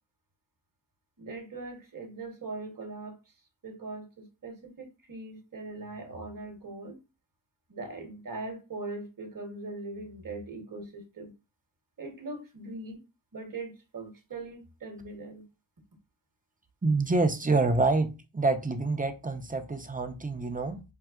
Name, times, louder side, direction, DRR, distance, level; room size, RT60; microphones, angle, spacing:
voice 1, 1.2-3.2 3.6-7.0 7.7-11.3 12.0-13.0 13.3-15.4, right 2 dB, 45° right, 1.1 m, -40 dB
voice 2, 16.8-20.8, right 3 dB, 20° right, 0.5 m, -27 dB
5.6 x 2.0 x 2.3 m
wide cardioid pair, 70°, 47 cm